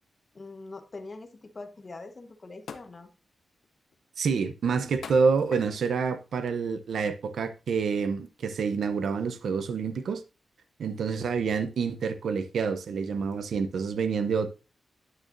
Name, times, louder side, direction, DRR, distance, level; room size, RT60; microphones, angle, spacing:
voice 1, 0.3-3.1, left 3 dB, 35° left, 1.3 m, -43 dB
sound 1, 1.8-1.9 2.7-3.1 3.6-4.0 5.0-5.9 6.7-6.9, left 6 dB, 85° left, 0.8 m, -44 dB
voice 2, 4.2-10.2 10.8-14.5, right 5 dB, 80° right, 0.8 m, -27 dB
9.5 x 8.8 x 2.6 m
wide cardioid pair, 120°, 0 cm